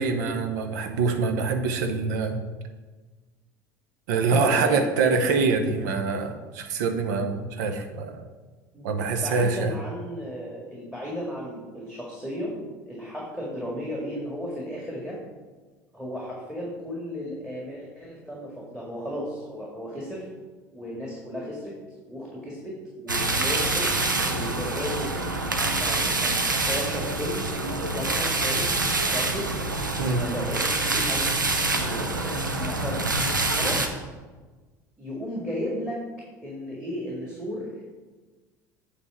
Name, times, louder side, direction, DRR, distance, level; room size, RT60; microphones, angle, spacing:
voice 1, 0.0-2.4 4.1-8.2 8.8-9.8 30.0-30.2, right 4 dB, 65° right, 6 dB, 0.8 m, -25 dB
voice 2, 4.3-4.9 8.7-12.6 12.9-15.2 15.9-20.3 20.7-21.7 22.1-23.9 24.3-27.4 27.7-29.5 30.0-33.1 33.6-34.0 35.0-36.0 36.4-37.7, equal, 5° right, -4 dB, 1.9 m, -34 dB
sound 1, 23.1-33.9, right 2 dB, 90° right, 0.6 m, -26 dB
8.1 x 3.4 x 5.9 m, 1.3 s
figure-of-eight pair, 65°, 10 cm